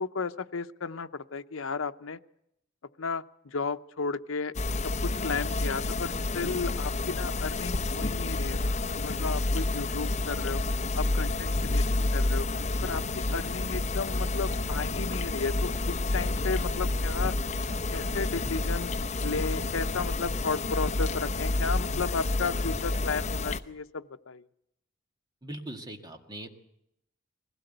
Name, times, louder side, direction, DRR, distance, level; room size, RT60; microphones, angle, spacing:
voice 1, 0.0-2.2 3.0-4.6 4.8-10.6 11.0-12.5 12.8-13.0 13.3-17.3 17.9-18.9 19.2-24.4, left 4 dB, 80° left, 9 dB, 0.8 m, -34 dB
sound 1, 4.5-23.6, left 2 dB, 35° left, 0.8 m, -29 dB
sound 2, 14.0-20.4 20.7-21.2, left 2 dB, 15° left, 1.5 m, -54 dB
voice 2, 25.4-26.5, right 1 dB, 20° right, 5 dB, 1.8 m, -41 dB
21.0 x 16.5 x 8.0 m, 0.79 s
head